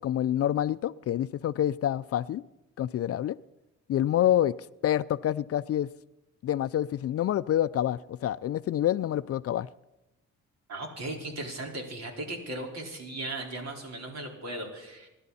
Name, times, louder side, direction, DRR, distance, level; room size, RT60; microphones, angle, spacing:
voice 1, 0.0-2.4 2.8-3.4 3.9-4.5 4.8-5.9 6.4-9.7, left 11 dB, 50° left, 0.4 m, -27 dB
voice 2, 10.7-15.1, right 2 dB, 60° right, 4.5 m, -37 dB
27.5 x 12.0 x 4.2 m
cardioid pair, 90°, 30 cm